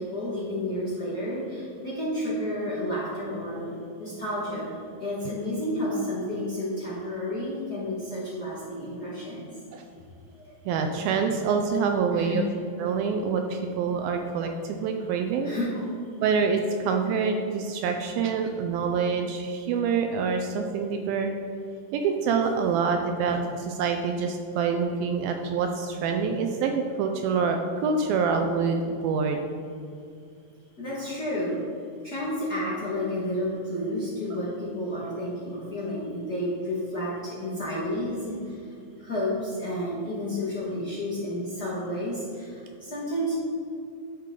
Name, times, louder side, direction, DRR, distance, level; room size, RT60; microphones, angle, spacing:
voice 1, 0.0-4.7 5.0-9.5 10.3-10.4 12.1-12.4 15.4-15.9 29.3-29.4 30.8-31.6 32.0-38.6 39.0-43.4, left 1 dB, 65° left, -9 dB, 0.9 m, -31 dB
voice 2, 10.7-12.4 12.8-15.5 16.2-21.3 21.9-29.4, right 5 dB, 80° right, 4 dB, 2.2 m, -26 dB
11.0 x 6.3 x 3.8 m, 2.4 s
omnidirectional pair, 4.6 m